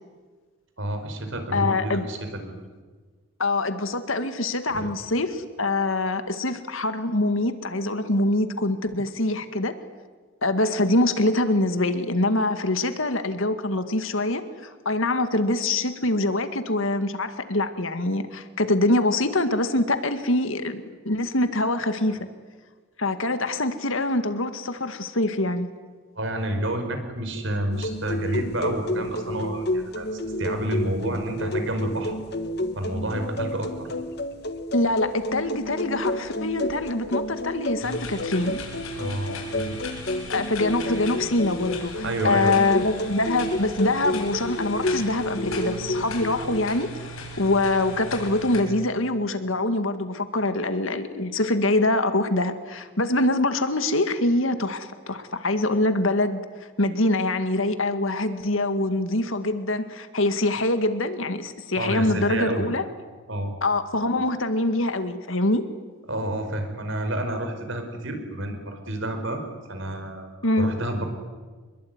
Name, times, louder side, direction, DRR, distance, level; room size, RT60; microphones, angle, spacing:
voice 1, 0.8-2.5 4.7-4.9 26.1-32.1 32.7-33.9 39.0-39.8 42.0-42.6 61.7-62.7 63.3-63.5 66.1-69.4 69.7-70.3 70.6-71.0, right 1 dB, 60° right, 6 dB, 5.0 m, -29 dB
voice 2, 1.5-2.1 3.4-9.7 10.4-22.3 23.0-25.7 34.7-38.6 40.3-47.1 47.4-56.4 56.8-62.9 63.6-65.6 70.4-70.7, left 2 dB, 65° left, 9 dB, 2.0 m, -24 dB
sound 1, 27.7-46.6, left 1 dB, 50° left, 1.7 m, -30 dB
sound 2, 37.8-48.6, left 2 dB, 85° left, 7.7 m, -38 dB
27.0 x 22.0 x 9.7 m, 1.4 s
head